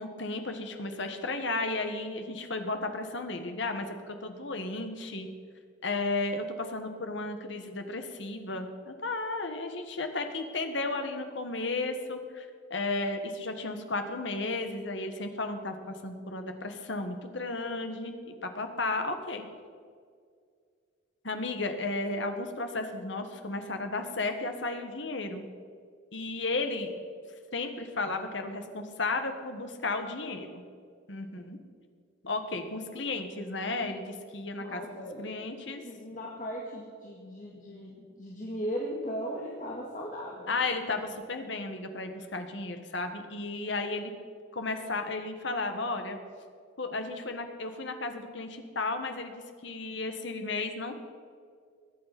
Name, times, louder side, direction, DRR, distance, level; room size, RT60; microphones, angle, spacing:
voice 1, 0.0-5.3 5.8-19.5 21.2-25.4 26.1-26.9 27.5-30.6 31.1-31.6 32.2-34.8 35.2-35.8 40.5-44.1 44.5-46.2 46.8-51.0, left 3 dB, 65° left, 6 dB, 1.6 m, -34 dB
voice 2, 34.6-35.2 35.8-40.5, equal, 40° left, -3 dB, 1.9 m, -37 dB
21.5 x 8.7 x 6.0 m, 2.1 s
head